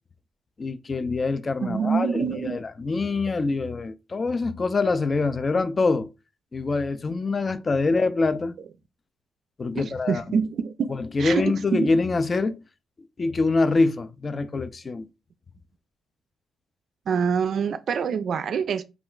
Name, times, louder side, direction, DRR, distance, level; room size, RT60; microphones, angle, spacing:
voice 1, 0.6-6.1 6.5-8.5 9.6-10.4 11.0-12.6 13.2-15.1, left 3 dB, 35° left, 0.3 m, -25 dB
voice 2, 1.6-2.6 9.7-11.4 11.7-11.9 17.1-18.8, right 6 dB, 60° right, 0.3 m, -26 dB
2.3 x 2.1 x 3.7 m
cardioid pair, 70°, 0 cm